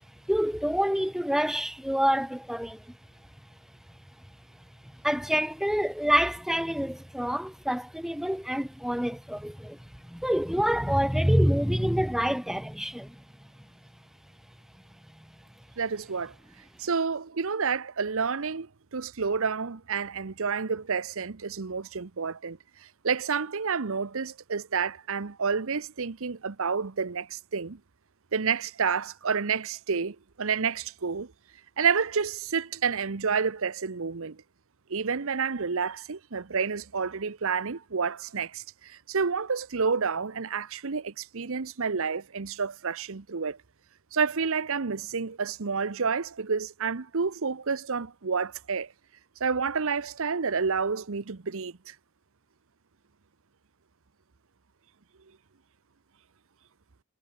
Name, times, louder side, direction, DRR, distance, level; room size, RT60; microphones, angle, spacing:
voice 1, 0.3-2.9 5.0-13.2 15.2-15.3, equal, ahead, 0.9 m, -27 dB
voice 2, 15.8-16.3 16.8-22.6 23.0-27.8 28.3-31.3 31.8-34.4 34.9-43.6 44.1-48.9 49.4-51.9, right 5 dB, 65° right, 0.8 m, -29 dB
head